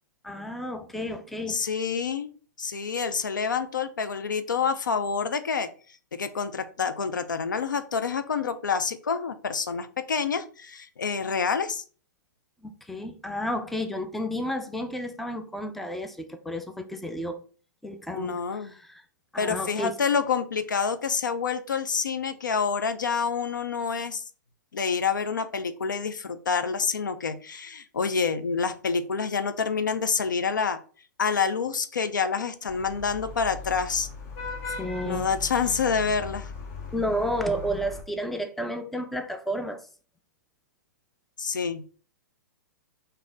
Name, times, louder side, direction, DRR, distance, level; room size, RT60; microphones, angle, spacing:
voice 1, 0.2-1.6 12.6-17.4 17.8-19.0 19.3-20.0 34.7-35.3 36.9-39.8, equal, ahead, 0.3 m, -32 dB
voice 2, 1.5-2.3 2.6-5.7 6.1-11.8 18.1-18.7 19.4-24.2 24.7-30.8 31.2-34.1 35.0-36.5 41.4-41.8, left 5 dB, 80° left, 0.4 m, -27 dB
Vehicle horn car horn honking / Traffic noise roadway noise, 32.7-38.0, left 4 dB, 45° left, 0.9 m, -38 dB
3.8 x 2.7 x 3.8 m
figure-of-eight pair, 110°, 10 cm